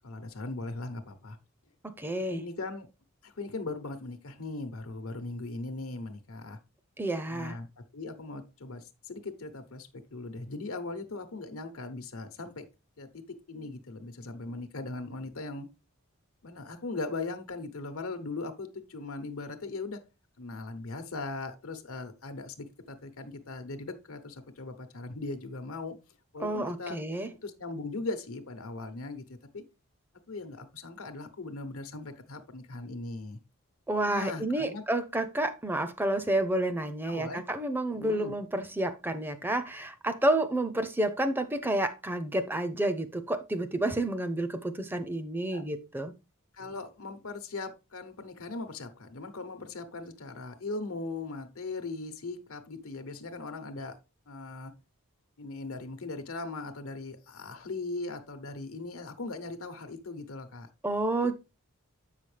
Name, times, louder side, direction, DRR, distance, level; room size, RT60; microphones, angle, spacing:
voice 1, 0.0-1.4 2.3-2.9 3.2-6.6 7.3-7.7 7.9-12.6 13.0-13.2 13.5-15.7 16.4-20.0 20.4-26.0 26.3-27.0 27.4-29.2 29.5-29.6 30.3-33.4 34.0-34.8 37.0-37.4 37.9-38.3 45.5-45.6 46.5-54.0 54.3-54.7 55.4-60.7 61.2-61.3, left 3 dB, 85° left, 1.0 m, -39 dB
voice 2, 2.0-2.4 7.0-7.6 26.4-27.3 33.9-46.1 60.8-61.3, right 1 dB, 10° right, 0.5 m, -30 dB
7.8 x 5.6 x 3.3 m
head